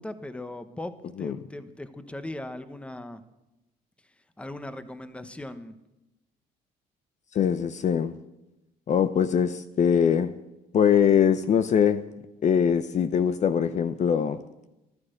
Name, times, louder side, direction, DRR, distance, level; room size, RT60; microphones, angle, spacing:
voice 1, 0.0-3.2 4.4-5.7, left 1 dB, 5° left, 11 dB, 1.0 m, -38 dB
voice 2, 7.3-8.2 8.9-10.4 10.7-12.0 12.4-14.4, left 8 dB, 45° left, 12 dB, 0.7 m, -22 dB
14.5 x 12.5 x 6.5 m, 0.95 s
cardioid pair, 110°, 17 cm